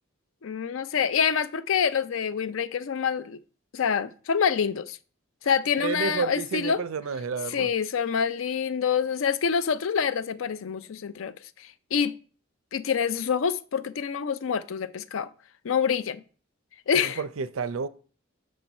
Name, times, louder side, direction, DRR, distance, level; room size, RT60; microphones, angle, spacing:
voice 1, 0.4-3.4 3.7-5.0 5.4-6.8 7.5-11.3 11.6-12.1 12.7-15.3 15.6-16.2 16.9-17.2, left 7 dB, 75° left, 0.4 m, -26 dB
voice 2, 5.8-7.7 17.0-17.9, right 5 dB, 85° right, 0.5 m, -30 dB
6.4 x 4.4 x 5.3 m
head